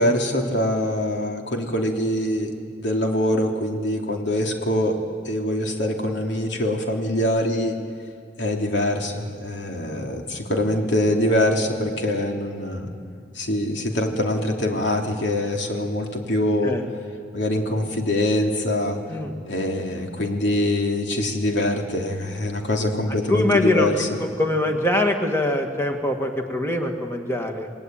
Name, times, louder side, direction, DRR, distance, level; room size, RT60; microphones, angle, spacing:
voice 1, 0.0-5.0 5.2-7.7 8.4-12.9 13.3-16.8 17.3-19.0 19.4-24.1, left 1 dB, 70° left, 2 dB, 3.0 m, -24 dB
voice 2, 23.3-23.9 24.4-27.7, left 1 dB, 15° left, 4 dB, 2.1 m, -23 dB
29.0 x 19.5 x 9.2 m, 2.2 s
head